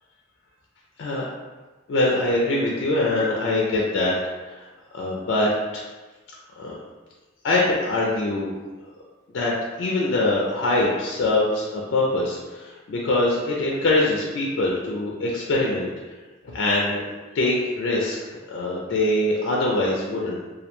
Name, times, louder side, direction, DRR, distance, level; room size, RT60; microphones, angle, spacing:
voice 1, 1.9-4.2 4.5-4.6 4.9-5.9 6.6-6.7 7.4-8.5 9.3-9.5 9.8-15.9 16.5-17.0 17.3-20.4, left 2 dB, 60° left, -3 dB, 0.3 m, -23 dB
2.2 x 2.1 x 2.9 m, 1.3 s
head